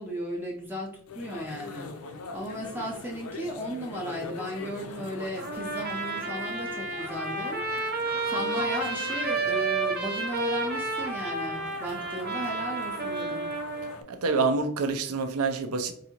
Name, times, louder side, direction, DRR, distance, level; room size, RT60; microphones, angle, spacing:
voice 1, 0.0-1.9 2.3-7.7 8.3-13.5, equal, 10° right, 0.6 m, -35 dB
sound 1, 1.1-14.0, left 4 dB, 70° left, 0.5 m, -42 dB
Trumpet, 5.4-14.0, right 3 dB, 45° right, 0.8 m, -31 dB
voice 2, 14.1-15.9, right 4 dB, 75° right, 0.5 m, -27 dB
4.7 x 2.6 x 2.8 m
head